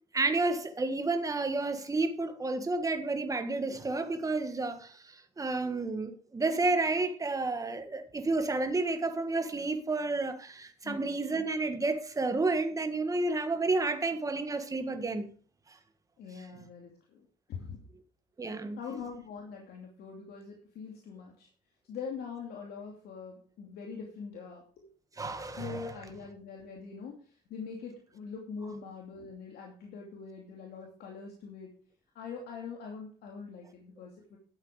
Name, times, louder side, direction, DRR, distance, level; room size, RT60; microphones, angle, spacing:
voice 1, 0.1-15.3 18.4-18.8 25.2-25.9, right 3 dB, 20° right, 1.6 m, -31 dB
voice 2, 16.2-17.2 17.5-17.8 18.8-21.5 21.8-24.9 25.6-31.7 32.1-34.4, left 5 dB, 70° left, 2.7 m, -43 dB
11.5 x 8.3 x 5.0 m
cardioid pair, 110°, 17 cm